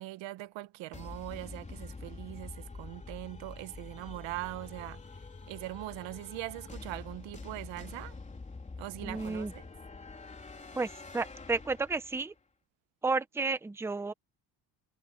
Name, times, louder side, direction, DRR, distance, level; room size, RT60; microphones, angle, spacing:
voice 1, 0.0-8.2 8.8-9.7, right 18 dB, 85° right, 1.1 m, -41 dB
sound 1, 0.9-12.3, left 3 dB, 15° left, 3.7 m, -46 dB
voice 2, 9.0-9.5 10.7-10.9 11.1-12.3 13.0-14.1, right 3 dB, 5° right, 0.7 m, -32 dB
cardioid pair, 150°, 43 cm